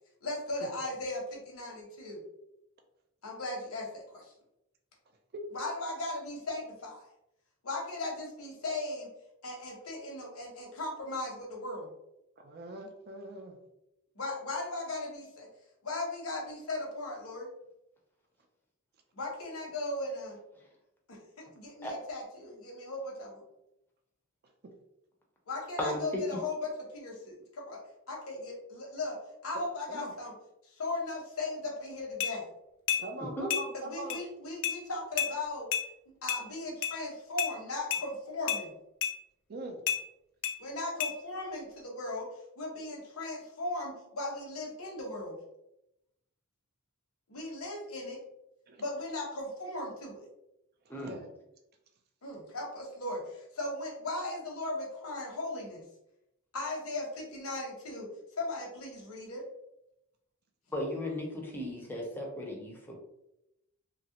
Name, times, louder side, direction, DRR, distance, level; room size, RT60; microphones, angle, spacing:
voice 1, 0.2-2.2 3.2-4.3 5.5-7.1 7.6-9.1 9.4-11.9 14.2-15.5 15.8-17.5 19.1-20.4 21.1-23.4 25.5-27.8 28.1-30.3 30.6-32.4 33.7-35.7 36.2-38.7 40.6-42.3 42.6-45.4 47.3-48.2 48.8-50.3 52.2-55.8 56.5-58.1 58.4-59.4, left 2 dB, 85° left, -2 dB, 0.9 m, -37 dB
voice 2, 12.4-13.6 29.9-30.1 33.0-34.2 39.5-39.8 48.7-48.8 50.9-51.3, right 2 dB, 45° right, 3 dB, 0.4 m, -42 dB
sound 1, 32.2-32.3 32.9-33.0 33.5-33.6 34.1-34.2 34.6-34.8 35.2-35.3 35.7-35.9 36.3-36.4 36.8-36.9 37.4-37.5 37.9-38.0 38.5-38.6 39.0-39.1 39.9-40.0 40.4-40.6 41.0-41.1, left 9 dB, 60° left, 0.4 m, -30 dB
voice 3, 33.2-33.5 50.9-51.1 60.7-62.9, left 1 dB, 10° left, -1 dB, 0.6 m, -36 dB
3.0 x 2.3 x 2.8 m, 0.85 s
head